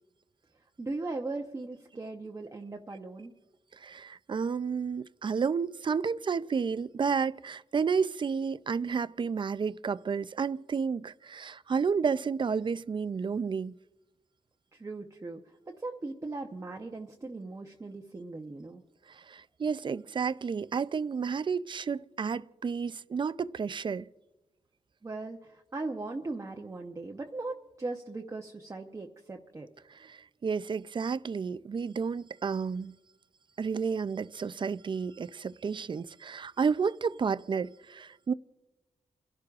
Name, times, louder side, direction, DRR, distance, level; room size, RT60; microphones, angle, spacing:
voice 1, 0.8-3.3 14.7-15.4 15.7-18.8 25.0-29.7, right 3 dB, 25° right, 0.8 m, -38 dB
voice 2, 3.8-13.7 19.3-24.1 30.0-33.0 33.6-38.3, right 5 dB, 40° right, 0.4 m, -31 dB
29.5 x 11.5 x 2.4 m
wide cardioid pair, 125°, 13 cm